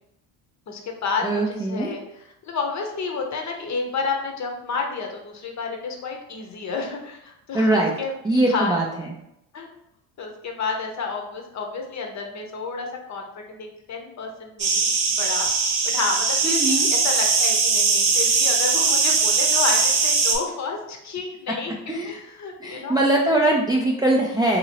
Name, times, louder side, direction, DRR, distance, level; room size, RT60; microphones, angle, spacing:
voice 1, 0.7-8.1 8.5-9.1 9.5-9.7 10.2-15.5 15.9-23.0, left 4 dB, 40° left, 2 dB, 0.7 m, -30 dB
voice 2, 1.2-1.9 7.5-7.9 8.2-8.8 16.4-16.9 21.9-22.1 22.6-24.6, right 1 dB, 10° right, -2 dB, 0.3 m, -21 dB
sound 1, 14.6-20.4, right 4 dB, 60° right, 0.8 m, -20 dB
2.9 x 2.7 x 2.8 m, 0.82 s
supercardioid pair, 75°, 43 cm